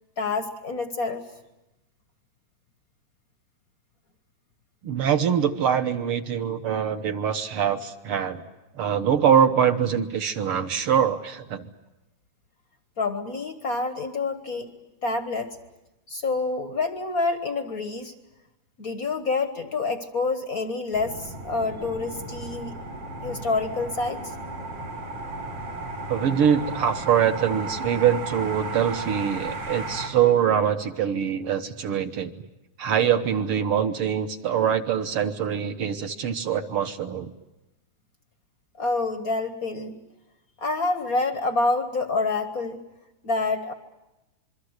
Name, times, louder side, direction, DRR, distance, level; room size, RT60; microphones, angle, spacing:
voice 1, 0.2-1.2 13.0-14.7 15.0-15.6 16.1-18.1 18.8-22.7 23.2-24.3 38.8-40.0 40.6-42.8 43.2-43.7, left 3 dB, 55° left, 8 dB, 1.0 m, -27 dB
voice 2, 4.8-8.4 8.7-11.7 26.1-32.3 32.8-37.3, right 8 dB, 60° right, 7 dB, 1.6 m, -23 dB
sound 1, 20.9-30.1, right 2 dB, 85° right, 5.9 m, -34 dB
26.5 x 23.5 x 8.0 m, 0.98 s
omnidirectional pair, 3.4 m